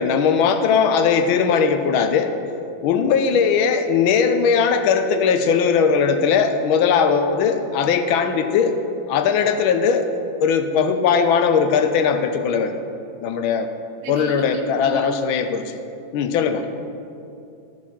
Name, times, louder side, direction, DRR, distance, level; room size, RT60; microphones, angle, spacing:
voice 1, 0.0-2.3 2.8-8.8 9.1-12.7 13.2-13.7 14.1-15.8 16.1-16.6, left 6 dB, 85° left, 8 dB, 1.4 m, -19 dB
voice 2, 14.0-15.2, right 5 dB, 75° right, 4 dB, 1.5 m, -32 dB
13.5 x 4.9 x 5.4 m, 2.6 s
omnidirectional pair, 2.2 m